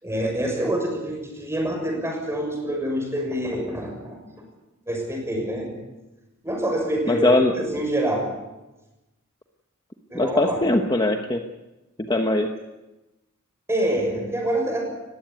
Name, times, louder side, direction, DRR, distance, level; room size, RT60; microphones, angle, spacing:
voice 1, 0.0-4.2 4.9-5.7 6.4-7.3 7.5-8.3 10.1-10.8 13.7-14.8, right 1 dB, 15° right, 1 dB, 6.4 m, -26 dB
voice 2, 7.1-7.5 10.1-11.4 12.1-12.5, left 2 dB, 20° left, 4 dB, 1.1 m, -20 dB
20.0 x 15.5 x 9.6 m, 1.0 s
head